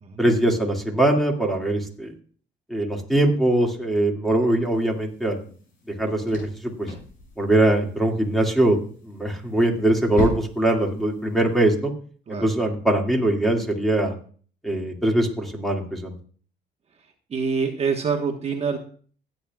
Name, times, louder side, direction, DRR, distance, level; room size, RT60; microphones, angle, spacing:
voice 1, 0.2-2.1 2.7-5.4 5.9-6.5 6.8-6.9 7.4-8.8 9.0-11.9 12.3-14.1 14.6-16.2, right 1 dB, ahead, 1 dB, 2.2 m, -22 dB
sound 1, 4.6-11.7, left 2 dB, 55° left, 6.1 m, -38 dB
voice 2, 17.3-18.8, right 5 dB, 40° right, 3 dB, 1.3 m, -25 dB
16.5 x 9.1 x 2.4 m, 0.43 s
cardioid pair, 110°, 17 cm